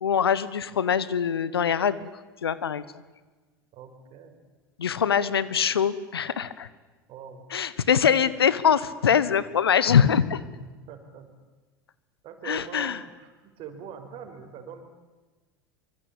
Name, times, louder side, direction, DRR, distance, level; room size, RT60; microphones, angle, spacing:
voice 1, 0.0-2.0 2.4-2.8 4.8-6.7 7.5-10.4 12.4-13.0, left 8 dB, 80° left, 17 dB, 1.2 m, -23 dB
voice 2, 3.7-4.4 7.1-7.4 10.9-11.3 12.2-14.8, right 7 dB, 45° right, 7 dB, 5.2 m, -43 dB
25.0 x 24.0 x 8.9 m, 1.3 s
hypercardioid pair, 80°, 13 cm